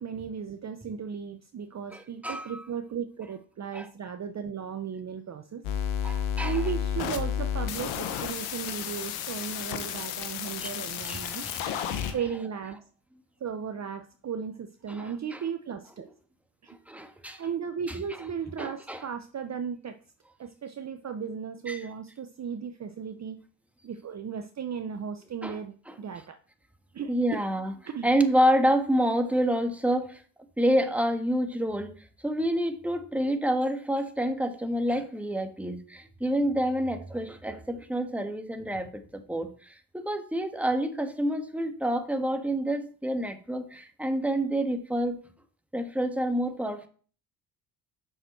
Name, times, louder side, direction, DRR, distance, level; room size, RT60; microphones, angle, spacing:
voice 1, 0.0-5.6 6.4-11.5 12.1-12.8 13.4-16.1 16.6-16.8 17.4-20.0 20.4-23.4 23.8-26.4 26.9-27.4 27.9-28.1, right 7 dB, 35° right, 8 dB, 0.7 m, -36 dB
voice 2, 1.9-2.6 3.7-3.9 6.0-6.6 10.6-10.7 11.0-12.1 14.9-15.4 16.0-16.1 16.7-17.4 17.9-18.0 18.6-19.0 21.7-21.8 25.4-25.6 25.9-26.0 27.1-27.7 28.0-30.2 30.6-31.9 32.2-45.2 45.7-46.9, equal, 5° right, 6 dB, 1.5 m, -28 dB
sound 1, 5.6-12.1, left 8 dB, 80° left, 1.2 m, -32 dB
7.8 x 6.2 x 4.4 m, 0.42 s
supercardioid pair, 65°, 48 cm